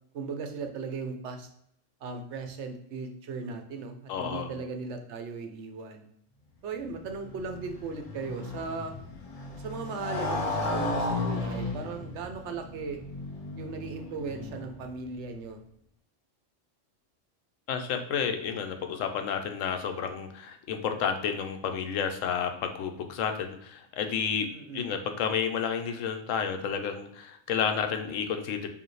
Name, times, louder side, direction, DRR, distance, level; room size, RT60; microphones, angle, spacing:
voice 1, 0.1-1.5 2.0-6.1 6.6-8.9 9.5-13.0 13.6-15.6 24.5-24.9, right 4 dB, 70° right, 6 dB, 0.9 m, -37 dB
voice 2, 4.1-4.5 17.7-24.5 24.7-28.7, left 7 dB, 85° left, 6 dB, 1.0 m, -31 dB
Motorcycle, 6.8-15.0, left 2 dB, 40° left, 0.6 m, -35 dB
4.8 x 2.8 x 3.1 m, 0.71 s
omnidirectional pair, 1.3 m